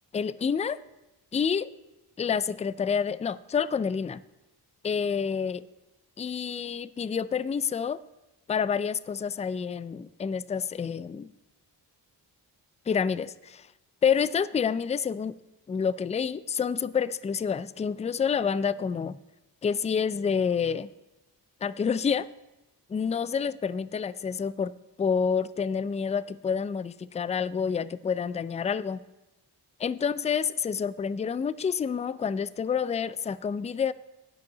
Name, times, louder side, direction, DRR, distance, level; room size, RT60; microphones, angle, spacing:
voice 1, 0.1-0.8 1.3-1.7 2.2-4.2 4.8-5.6 6.2-8.0 8.5-11.3 12.9-13.7 14.0-15.3 15.7-19.2 19.6-20.9 21.6-22.3 22.9-24.7 25.0-29.0 29.8-33.9, left 6 dB, 15° left, 17 dB, 0.3 m, -28 dB
9.5 x 5.3 x 7.8 m, 1.0 s
supercardioid pair, 45°, 46 cm